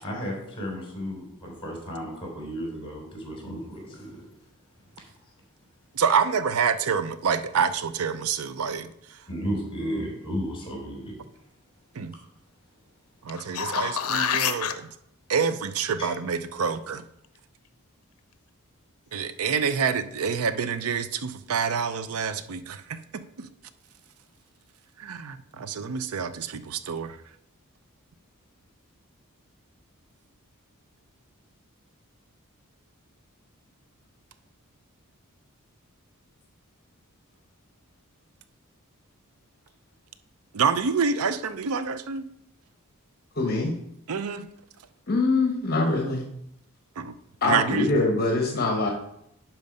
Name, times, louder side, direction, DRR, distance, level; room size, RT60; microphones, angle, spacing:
voice 1, 0.0-4.3 9.3-11.1 16.0-16.1, equal, 25° left, 3.5 m, -33 dB
voice 2, 5.9-9.3 11.9-12.1 13.2-14.9 15.3-17.0 19.1-23.5 25.0-27.2 40.5-42.3 44.1-44.5 47.0-47.1 47.4-47.9, right 6 dB, 75° right, 0.5 m, -27 dB
sound 1, 13.3-14.7 19.5-19.6, left 7 dB, 75° left, 0.6 m, -27 dB
voice 3, 43.3-43.8 45.1-46.3 47.4-48.9, left 2 dB, 45° left, 1.1 m, -23 dB
11.0 x 4.6 x 5.2 m
head